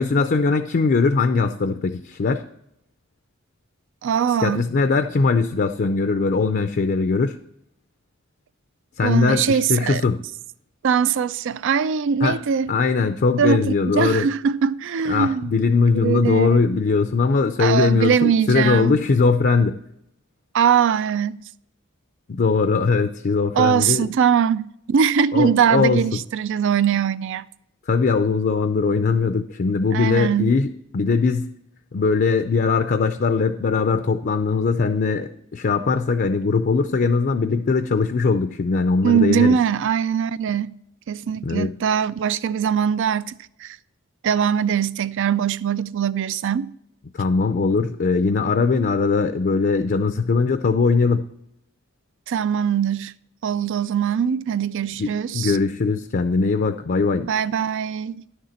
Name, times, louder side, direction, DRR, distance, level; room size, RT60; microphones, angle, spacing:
voice 1, 0.0-2.4 4.4-7.4 9.0-10.2 12.2-12.4 12.7-14.3 15.1-19.8 22.3-24.1 25.3-26.2 27.9-31.5 31.9-39.6 41.4-41.8 47.1-51.3 55.0-57.3, left 4 dB, 45° left, 0.5 m, -20 dB
voice 2, 4.0-4.7 9.0-10.0 10.8-12.7 13.4-13.7 13.9-15.6 15.9-16.8 17.6-19.0 20.5-21.4 23.5-27.4 29.9-30.5 39.0-40.7 41.1-43.3 43.6-43.8 44.2-46.7 52.3-53.1 53.4-55.6 57.2-58.2, right 7 dB, 60° right, 0.4 m, -21 dB
11.0 x 6.6 x 4.3 m
head